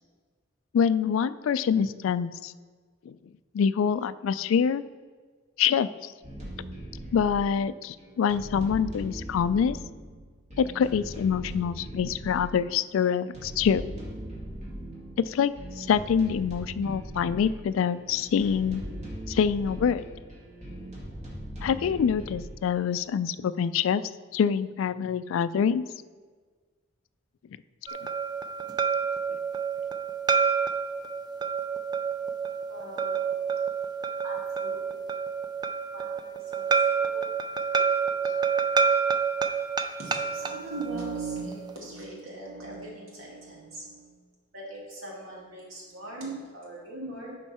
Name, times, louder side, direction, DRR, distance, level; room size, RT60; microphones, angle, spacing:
voice 1, 0.7-2.5 3.1-3.2 3.5-4.8 5.6-6.1 7.1-9.8 10.6-13.8 15.2-18.8 19.3-20.0 21.6-24.0 24.3-25.8, left 7 dB, 70° left, 16 dB, 0.3 m, -25 dB
sound 1, 6.2-22.4, equal, 35° right, 2.1 m, -40 dB
sound 2, 27.9-41.7, right 6 dB, 20° right, 0.3 m, -28 dB
voice 2, 32.7-33.3 34.2-35.0 35.9-37.3 37.7-38.9 40.0-44.2 44.5-47.4, right 3 dB, 80° right, -3 dB, 2.3 m, -40 dB
11.0 x 4.5 x 4.2 m, 1.5 s
head